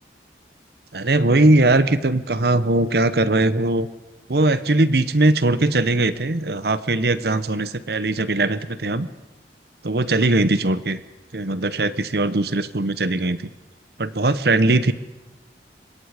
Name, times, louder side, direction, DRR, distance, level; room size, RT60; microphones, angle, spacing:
voice 1, 0.9-3.9 4.3-9.1 9.8-11.0 11.3-13.5 14.0-14.9, right 2 dB, 65° right, 14 dB, 1.0 m, -20 dB
26.0 x 22.0 x 5.1 m, 1.1 s
head